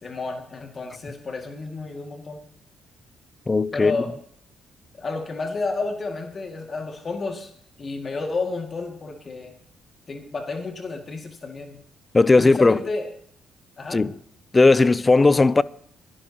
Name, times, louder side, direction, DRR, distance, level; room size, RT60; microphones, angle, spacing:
voice 1, 0.0-2.4 3.7-4.1 5.0-7.5 7.8-9.5 10.1-11.8 12.4-13.1 13.8-14.0, left 3 dB, 40° left, 2.1 m, -31 dB
voice 2, 3.5-4.0 12.1-12.9 13.9-14.2 14.5-15.6, left 3 dB, 25° left, 0.5 m, -17 dB
28.0 x 11.0 x 2.9 m
cardioid pair, 90°, 0 cm